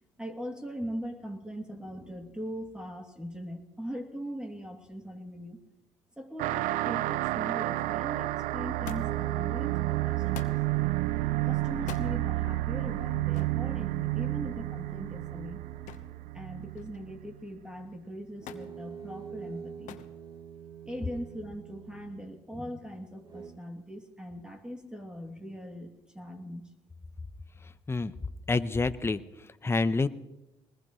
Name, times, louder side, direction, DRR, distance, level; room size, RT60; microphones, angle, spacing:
voice 1, 0.0-5.6 6.2-10.6 11.4-15.6 16.3-20.0 20.8-26.7, equal, 5° right, 3 dB, 2.7 m, -40 dB
sound 1, 6.4-17.4, right 18 dB, 75° right, 0.5 m, -31 dB
Thump thud, 8.9-9.3 10.3-10.7 11.8-12.1 13.3-13.6 15.9-16.2 16.5-17.1 18.5-18.7 19.9-20.2 21.1-21.6 22.6-22.7, left 10 dB, 70° left, 1.1 m, -45 dB
sound 2, 9.0-16.3 18.3-22.5 23.1-23.5, right 7 dB, 35° right, 5.0 m, -45 dB
voice 2, 28.5-30.1, left 3 dB, 20° left, 11 dB, 0.8 m, -28 dB
21.0 x 20.0 x 3.2 m, 0.94 s
supercardioid pair, 65°, 14 cm